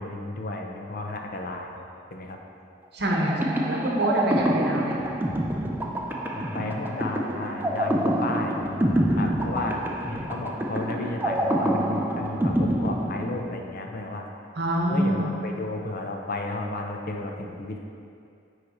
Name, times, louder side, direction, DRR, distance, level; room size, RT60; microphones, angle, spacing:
voice 1, 0.0-2.4 6.3-14.3 14.9-17.8, left 2 dB, 50° left, 2 dB, 0.5 m, -33 dB
voice 2, 2.9-5.1 14.6-15.3, right 1 dB, 60° right, -2 dB, 1.0 m, -26 dB
sound 1, 3.1-13.8, equal, 10° right, 0.4 m, -26 dB
9.4 x 3.2 x 4.1 m, 2.5 s
head